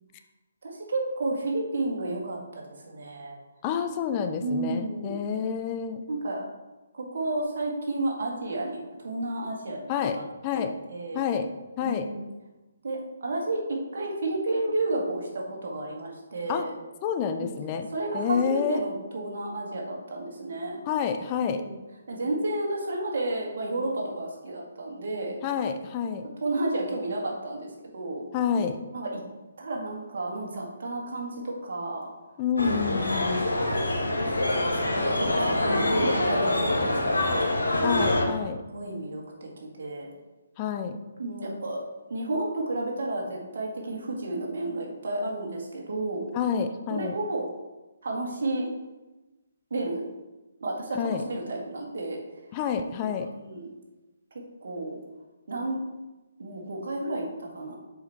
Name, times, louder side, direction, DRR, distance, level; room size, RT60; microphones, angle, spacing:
voice 1, 0.6-3.4 4.4-5.2 6.1-6.5 6.9-10.2 10.5-10.6 10.9-11.2 11.8-12.3 12.8-16.7 17.4-17.5 17.9-20.8 21.4-21.7 22.1-25.4 26.4-28.2 28.9-29.2 29.6-32.1 33.3-33.8 34.5-37.1 37.3-37.7 38.7-40.1 41.2-41.8 42.1-46.2 46.9-47.5 48.0-48.7 49.7-50.0 50.6-52.2 53.4-53.7 54.6-55.0 55.5-55.8 56.4-57.7, right 2 dB, 60° right, -2 dB, 2.0 m, -32 dB
voice 2, 3.6-6.0 9.9-10.7 11.1-12.1 16.5-16.7 17.0-17.9 18.1-18.8 20.9-21.6 25.4-26.3 28.3-28.8 32.4-33.5 37.8-38.6 40.6-41.0 46.3-47.1 50.9-51.2 52.5-53.3, left 7 dB, 30° left, 7 dB, 0.5 m, -28 dB
sound 1, 32.6-38.2, left 1 dB, 85° left, 1.5 m, -25 dB
7.1 x 5.0 x 4.2 m, 1.1 s
figure-of-eight pair, 140°, 0 cm